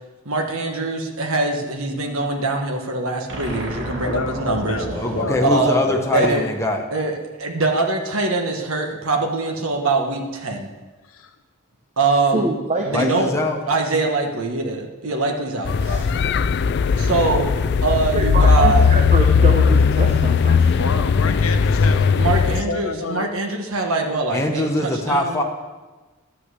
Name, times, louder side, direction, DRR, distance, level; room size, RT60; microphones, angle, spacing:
voice 1, 0.2-4.8 5.4-5.9 6.1-6.5 6.9-10.7 12.0-12.5 12.8-13.4 13.7-15.7 16.9-17.5 17.8-18.9 22.1-25.4, right 3 dB, 75° right, 2 dB, 1.4 m, -23 dB
sound 1, 3.3-6.6, right 1 dB, 55° right, 2.0 m, -32 dB
voice 2, 4.0-6.3 11.1-11.3 20.8-23.3, left 3 dB, 70° left, 7 dB, 0.8 m, -29 dB
voice 3, 4.9-6.8 12.9-13.6 24.3-25.4, left 1 dB, 15° left, 1 dB, 0.9 m, -22 dB
voice 4, 12.3-13.1 15.8-16.1 18.1-21.0, right 2 dB, 30° right, 2 dB, 0.9 m, -25 dB
sound 2, 15.6-22.6, left 5 dB, 50° left, 0.3 m, -17 dB
12.0 x 5.9 x 8.2 m, 1.2 s
head